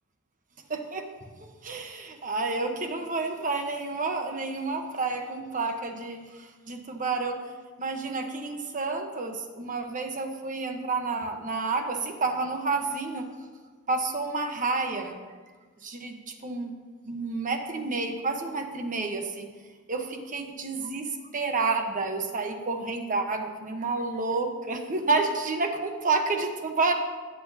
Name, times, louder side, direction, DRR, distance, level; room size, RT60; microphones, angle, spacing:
voice 1, 0.7-1.1 1.4-7.4 7.8-13.3 13.9-15.2 15.8-16.7 17.0-19.5 19.9-26.9, right 3 dB, 35° right, 4 dB, 1.1 m, -30 dB
18.5 x 8.1 x 2.8 m, 1.4 s
head